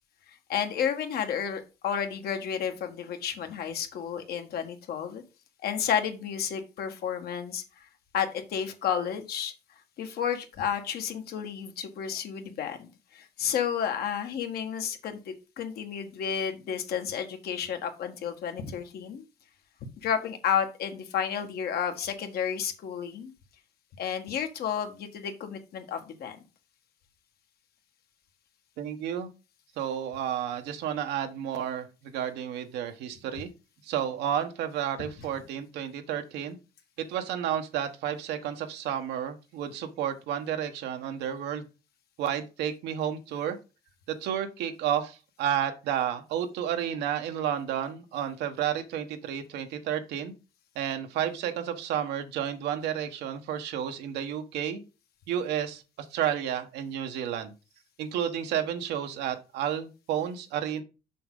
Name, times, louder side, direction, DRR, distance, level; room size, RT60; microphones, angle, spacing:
voice 1, 0.3-5.2 5.6-7.9 8.1-9.5 10.0-19.2 20.0-23.3 24.0-26.4, left 8 dB, 65° left, 6 dB, 1.6 m, -31 dB
voice 2, 28.8-29.3 29.8-33.5 33.8-36.6 37.0-41.6 42.2-43.6 44.1-50.3 50.7-54.8 55.3-57.5 58.0-60.8, right 9 dB, 85° right, 7 dB, 1.2 m, -31 dB
6.9 x 6.1 x 3.9 m, 0.30 s
cardioid pair, 110°, 17 cm